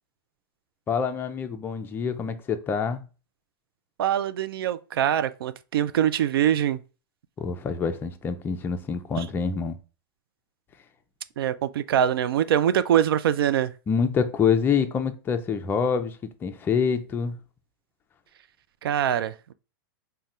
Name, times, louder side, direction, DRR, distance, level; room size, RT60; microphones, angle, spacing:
voice 1, 0.9-3.0 7.4-9.8 13.9-17.4, left 6 dB, 15° left, 0.4 m, -26 dB
voice 2, 4.0-6.8 9.2-9.3 11.4-13.7 18.8-19.5, right 10 dB, 85° right, 0.4 m, -23 dB
3.6 x 2.2 x 4.1 m
hypercardioid pair, 135°, 12 cm